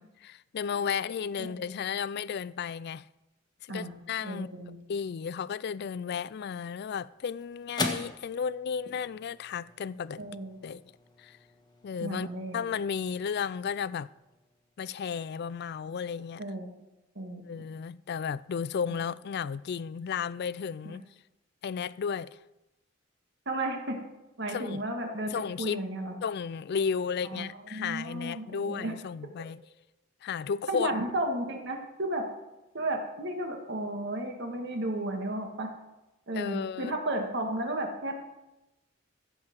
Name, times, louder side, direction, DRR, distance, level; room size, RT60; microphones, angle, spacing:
voice 1, 0.2-3.1 3.6-4.5 4.9-10.2 10.6-10.8 11.2-11.4 11.8-12.3 12.5-14.1 14.8-16.4 17.4-21.0 21.6-22.4 24.5-24.8 25.3-25.8 26.2-29.6 30.2-31.0 36.3-36.9, left 6 dB, 55° left, 0.3 m, -33 dB
voice 2, 4.2-4.8 10.2-10.6 12.0-12.6 16.4-16.7 17.2-17.7 23.5-24.0 24.4-26.1 27.3-28.9 30.7-32.3 32.7-35.7 36.3-38.2, right 1 dB, 60° right, 2.0 m, -33 dB
sound 1, 6.5-15.0, left 2 dB, 20° left, 1.4 m, -42 dB
14.0 x 7.7 x 6.2 m
head